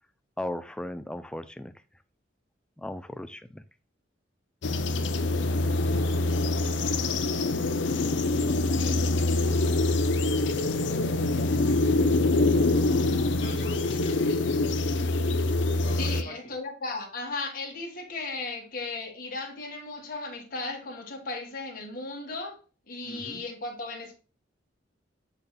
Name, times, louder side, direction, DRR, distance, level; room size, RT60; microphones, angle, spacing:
voice 1, 0.4-1.7 2.8-3.6, left 1 dB, 5° left, 0.3 m, -36 dB
sound 1, 4.6-16.2, left 2 dB, 80° left, 0.6 m, -25 dB
voice 2, 13.4-14.5 15.8-16.5 23.0-23.4, equal, 30° left, 2.4 m, -42 dB
voice 3, 16.0-22.6 22.9-24.1, left 3 dB, 50° left, 1.8 m, -36 dB
10.5 x 4.0 x 2.2 m
head